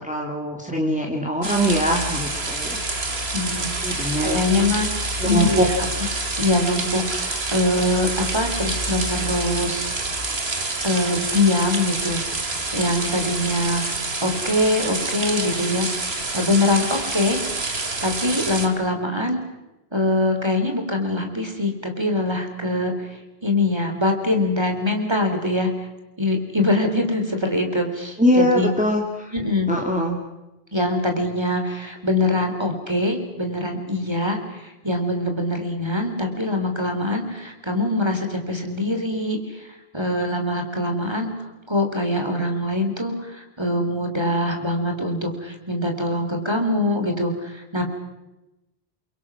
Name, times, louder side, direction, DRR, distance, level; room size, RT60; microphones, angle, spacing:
voice 1, 0.0-2.8 3.8-4.5 5.2-5.7 28.2-29.3 29.7-30.2, equal, 5° right, -1 dB, 2.5 m, -22 dB
sound 1, 1.4-18.7, right 2 dB, 80° right, 2.6 m, -27 dB
voice 2, 3.3-5.7 6.4-9.8 10.8-12.2 12.7-13.9 14.2-17.4 18.0-19.4 19.9-23.1 23.4-25.7 26.2-28.7 29.3-29.7 30.7-41.3 41.7-47.8, left 1 dB, 25° right, 4 dB, 3.3 m, -23 dB
29.0 x 23.5 x 6.1 m, 1.0 s
omnidirectional pair, 1.1 m